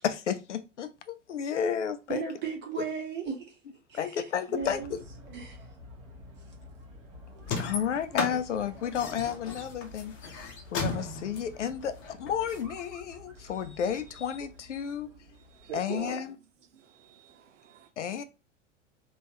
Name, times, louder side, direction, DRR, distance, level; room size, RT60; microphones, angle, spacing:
voice 1, 0.0-2.2 3.9-5.0 7.6-10.1 10.7-15.1 15.7-16.3 18.0-18.2, left 8 dB, 70° left, 0.6 m, -32 dB
voice 2, 2.1-3.6 3.9-4.9 5.3-5.7, right 5 dB, 30° right, 1.4 m, -36 dB
sound 1, 4.6-16.1, left 1 dB, 50° right, 1.5 m, -50 dB
sound 2, 7.4-12.6, left 4 dB, 35° left, 0.9 m, -35 dB
voice 3, 13.4-14.0 14.8-16.2 16.7-17.9, right 8 dB, 75° right, 0.6 m, -45 dB
3.5 x 2.5 x 3.0 m
figure-of-eight pair, 85°, 37 cm